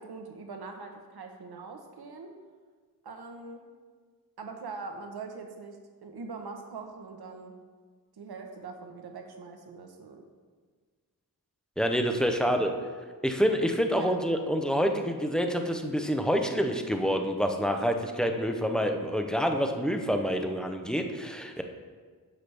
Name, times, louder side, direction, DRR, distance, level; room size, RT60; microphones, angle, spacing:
voice 1, 0.0-2.3 3.0-3.6 4.4-7.5 8.2-10.2 12.4-12.6 13.9-14.2, right 4 dB, 80° right, 4 dB, 1.1 m, -42 dB
voice 2, 11.8-12.7 13.2-21.6, equal, ahead, 4 dB, 0.6 m, -27 dB
10.0 x 6.9 x 3.4 m, 1.5 s
wide cardioid pair, 145°, 38 cm